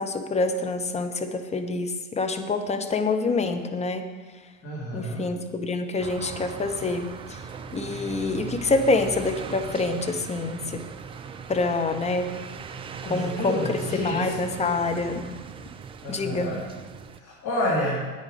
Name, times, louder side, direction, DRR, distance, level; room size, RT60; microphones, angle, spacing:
voice 1, 0.0-4.1 4.9-7.4 7.7-10.8 11.5-12.3 13.1-15.4 16.1-16.5, left 3 dB, 15° left, 7 dB, 0.8 m, -26 dB
voice 2, 4.6-5.2 13.0-14.3 16.0-16.7 17.2-18.0, equal, 40° left, -5 dB, 2.7 m, -29 dB
sound 1, 6.0-17.2, right 5 dB, 15° right, 0.4 m, -39 dB
9.7 x 8.8 x 5.1 m, 1.4 s
hypercardioid pair, 95°, 42 cm